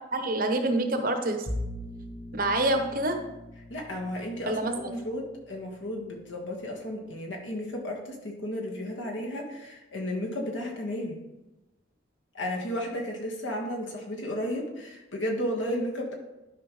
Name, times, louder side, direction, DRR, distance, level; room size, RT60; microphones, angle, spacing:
voice 1, 0.1-1.5 2.3-3.2 4.5-5.0, right 2 dB, 45° right, 6 dB, 0.9 m, -27 dB
Bowed string instrument, 1.4-6.5, left 1 dB, 45° left, 1.0 m, -41 dB
voice 2, 3.7-11.2 12.3-16.1, equal, 70° left, 0 dB, 1.6 m, -33 dB
12.0 x 5.3 x 3.2 m, 1.0 s
head